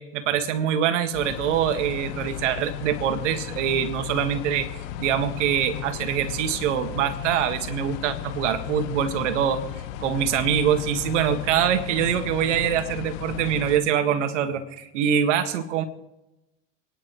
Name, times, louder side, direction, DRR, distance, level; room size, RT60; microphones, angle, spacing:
voice 1, 0.0-4.7 5.0-9.6 10.0-15.8, right 9 dB, 70° right, 8 dB, 1.8 m, -24 dB
sound 1, 1.1-13.8, left 11 dB, 55° left, 1.1 m, -35 dB
29.0 x 10.5 x 3.1 m, 0.96 s
hypercardioid pair, 90°, 38 cm